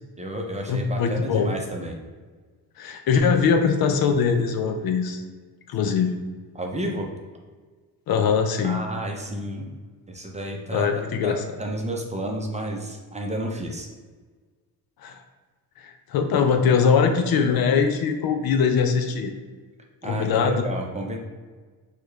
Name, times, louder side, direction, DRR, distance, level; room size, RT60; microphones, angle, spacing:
voice 1, 0.2-2.0 6.5-7.1 8.6-9.7 10.1-13.9 20.0-21.2, right 1 dB, 15° right, 1 dB, 0.6 m, -31 dB
voice 2, 0.7-1.5 2.8-5.2 5.7-6.1 8.1-8.8 10.7-11.4 15.0-15.2 15.8-19.3 20.0-20.6, left 6 dB, 60° left, 6 dB, 0.5 m, -22 dB
4.4 x 2.4 x 3.1 m, 1.4 s
cardioid pair, 70°, 41 cm